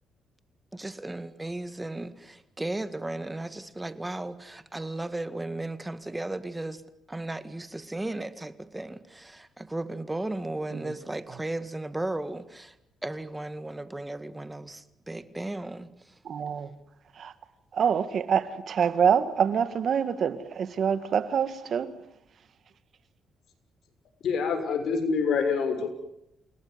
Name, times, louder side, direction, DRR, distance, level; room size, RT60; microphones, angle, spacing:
voice 1, 0.7-6.8 7.1-12.8 13.0-16.1, right 2 dB, 15° right, 1.9 m, -35 dB
voice 2, 16.3-16.7 17.2-17.3 17.7-22.0, right 7 dB, 55° right, 1.9 m, -26 dB
voice 3, 24.2-25.9, left 5 dB, 65° left, 6.3 m, -26 dB
29.5 x 18.0 x 9.7 m
cardioid pair, 90°, 0 cm